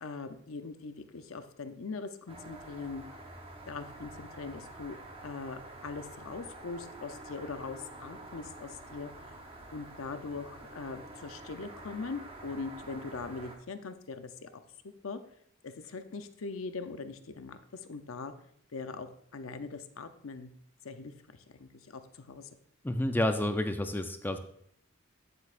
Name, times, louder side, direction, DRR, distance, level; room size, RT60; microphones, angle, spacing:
voice 1, 0.0-3.0 3.7-4.9 5.2-9.3 9.7-14.5 15.0-15.2 15.6-18.3 18.7-20.5 20.8-22.5, left 4 dB, 80° left, 9 dB, 0.7 m, -41 dB
sound 1, 2.3-13.6, right 2 dB, 30° right, 1.0 m, -48 dB
voice 2, 22.8-24.4, left 1 dB, 10° left, 8 dB, 0.4 m, -29 dB
9.4 x 7.9 x 2.5 m, 0.68 s
head